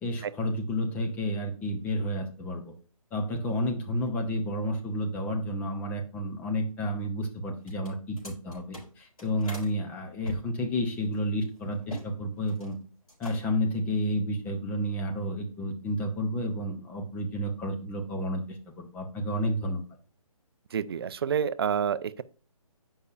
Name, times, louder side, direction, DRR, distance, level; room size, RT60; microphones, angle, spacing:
voice 1, 0.0-2.7 3.1-12.8 13.2-19.8, equal, 10° left, 0.6 m, -31 dB
sound 1, 7.6-9.7 10.2-12.1 12.4-12.8 13.1-13.7, left 1 dB, 80° left, 3.7 m, -43 dB
voice 2, 20.7-22.2, right 8 dB, 45° right, 0.4 m, -28 dB
8.2 x 5.5 x 2.4 m
hypercardioid pair, 150°, 19 cm